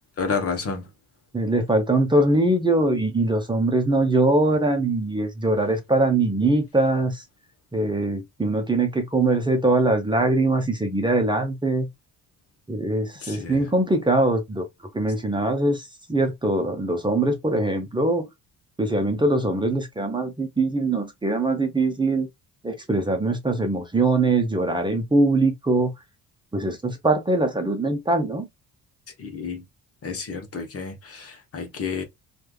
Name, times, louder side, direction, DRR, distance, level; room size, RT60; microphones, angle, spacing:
voice 1, 0.2-0.9 13.2-13.6 29.2-29.6 30.0-32.0, left 5 dB, 45° left, 1.0 m, -30 dB
voice 2, 1.3-7.2 7.7-11.9 12.7-14.7 14.9-18.3 18.8-22.3 22.6-25.9 26.5-28.5, right 2 dB, 15° right, 0.8 m, -22 dB
3.2 x 2.5 x 2.3 m
cardioid pair, 90°, 34 cm